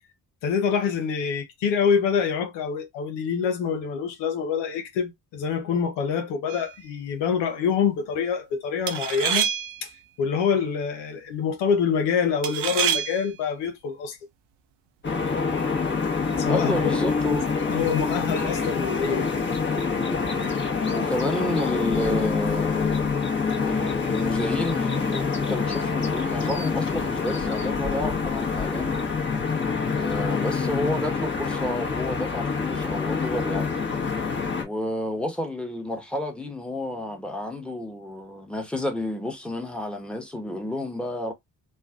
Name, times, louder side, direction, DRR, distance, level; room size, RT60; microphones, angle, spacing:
voice 1, 0.4-9.5 9.8-9.9 10.2-14.2 16.4-16.8 17.6-19.3, left 6 dB, 80° left, 0.8 m, -26 dB
sound 1, 6.5-6.8 8.9-9.9 12.4-13.3, right 10 dB, 70° right, 0.7 m, -27 dB
sound 2, 15.0-34.6, left 5 dB, 25° left, 1.1 m, -26 dB
voice 2, 16.5-17.4 20.9-23.2 23.6-29.0 29.9-33.8 34.6-41.3, left 1 dB, ahead, 1.1 m, -30 dB
3.2 x 2.3 x 2.4 m
hypercardioid pair, 45°, 43 cm